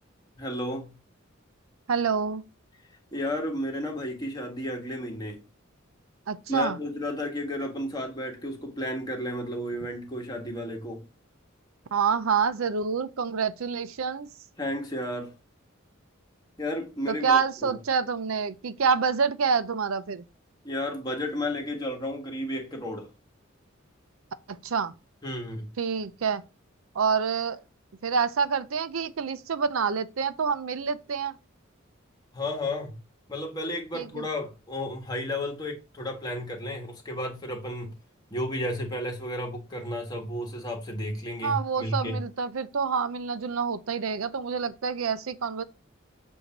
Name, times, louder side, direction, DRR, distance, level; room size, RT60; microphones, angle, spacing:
voice 1, 0.3-0.9 3.1-5.4 6.5-11.0 14.6-15.3 16.6-17.8 20.6-23.1 25.2-25.7 32.3-33.0 33.3-37.9 38.3-42.2, left 1 dB, 20° left, 1.5 m, -32 dB
voice 2, 1.9-2.4 6.3-6.8 11.9-14.3 17.1-20.2 24.6-24.9 25.8-26.4 26.9-27.6 28.0-31.3 33.9-34.3 41.4-45.6, right 6 dB, 85° right, 0.6 m, -27 dB
8.2 x 2.7 x 5.9 m
head